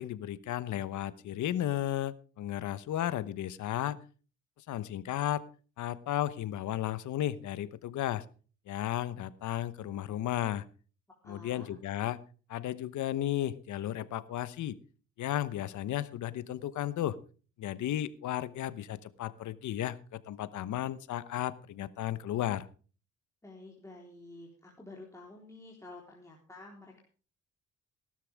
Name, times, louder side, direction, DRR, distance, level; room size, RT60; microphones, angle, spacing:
voice 1, 0.0-4.0 4.7-5.4 5.8-8.2 8.7-10.6 11.3-12.2 12.5-14.7 15.2-17.2 17.6-22.7, left 12 dB, 75° left, 16 dB, 1.1 m, -34 dB
voice 2, 11.2-11.8 23.4-27.0, left 2 dB, 10° left, -2 dB, 3.8 m, -50 dB
17.5 x 12.5 x 3.5 m, 0.38 s
cardioid pair, 90°, 30 cm